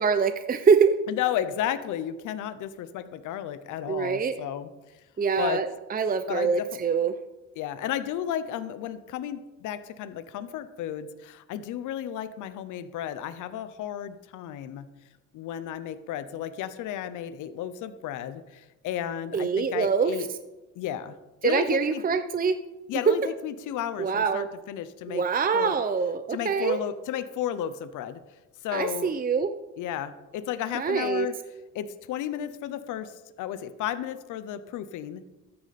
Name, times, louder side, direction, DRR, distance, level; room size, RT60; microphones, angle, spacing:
voice 1, 0.0-0.9 3.9-4.4 5.2-7.2 19.3-20.1 21.4-22.6 23.1-23.2 24.0-24.5 25.1-26.8 28.7-29.5 30.7-31.3, right 5 dB, 30° right, 9 dB, 0.7 m, -24 dB
voice 2, 1.1-4.7 5.4-5.6 6.3-6.8 7.6-14.9 15.3-20.3 20.8-21.1 21.4-22.0 22.9-25.2 25.5-25.8 26.3-28.2 28.6-29.1 29.8-31.3 31.7-35.2, left 10 dB, 90° left, 12 dB, 0.8 m, -33 dB
13.5 x 9.6 x 4.2 m, 1.1 s
cardioid pair, 90°, 30 cm